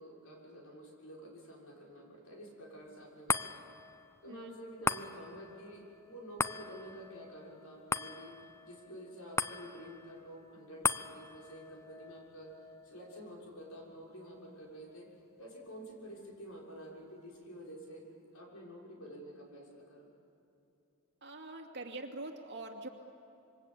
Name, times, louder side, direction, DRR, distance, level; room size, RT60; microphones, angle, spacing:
voice 1, 0.0-3.7 4.2-8.3 8.6-12.5 12.8-15.1 15.4-18.0 18.3-20.1, equal, 90° left, -2 dB, 6.4 m, -49 dB
sound 1, 3.3-15.9 16.3-16.4, left 4 dB, 15° left, 0.5 m, -40 dB
voice 2, 21.2-22.9, right 2 dB, 55° right, 3 dB, 2.6 m, -44 dB
27.0 x 24.0 x 8.6 m, 2.8 s
head